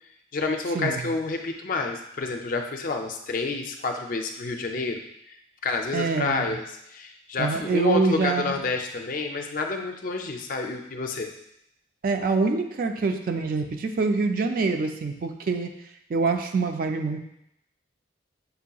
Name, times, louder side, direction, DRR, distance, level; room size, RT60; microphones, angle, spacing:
voice 1, 0.3-5.4 5.6-11.3, left 3 dB, 45° left, 4 dB, 0.4 m, -29 dB
voice 2, 5.9-6.5 7.4-8.6 12.0-15.7 16.1-17.2, right 4 dB, 45° right, 6 dB, 0.3 m, -25 dB
6.6 x 2.8 x 2.3 m, 0.79 s
head